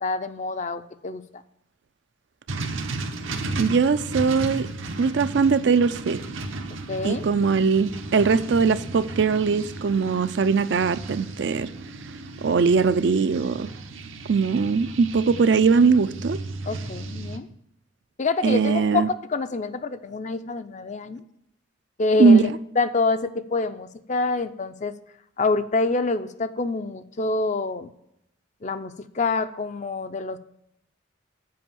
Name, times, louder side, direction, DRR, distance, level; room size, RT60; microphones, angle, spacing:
voice 1, 0.0-1.4 6.9-7.2 16.7-17.5 18.2-21.2 22.0-22.5 22.8-25.0 25.4-27.9 28.6-30.4, left 3 dB, 35° left, 0.5 m, -26 dB
sound 1, 2.5-17.4, right 2 dB, 80° right, 0.9 m, -35 dB
voice 2, 3.6-4.7 5.0-6.2 7.0-11.7 12.4-13.7 14.3-16.4 18.4-19.1 22.2-22.5, right 5 dB, 60° right, 0.4 m, -20 dB
7.7 x 5.4 x 7.2 m
head